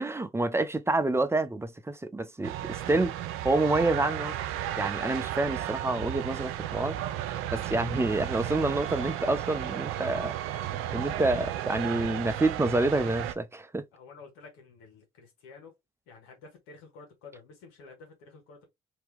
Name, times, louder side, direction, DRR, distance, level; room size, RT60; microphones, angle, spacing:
voice 1, 0.0-3.1 3.4-4.3 4.8-7.0 7.5-10.4 10.9-13.8, right 2 dB, 10° right, 0.7 m, -28 dB
sound 1, 2.4-13.3, right 12 dB, 80° right, 0.5 m, -34 dB
voice 2, 13.9-15.7 16.1-18.7, left 4 dB, 90° left, 1.5 m, -51 dB
2.9 x 2.8 x 3.5 m
supercardioid pair, 60°, 21 cm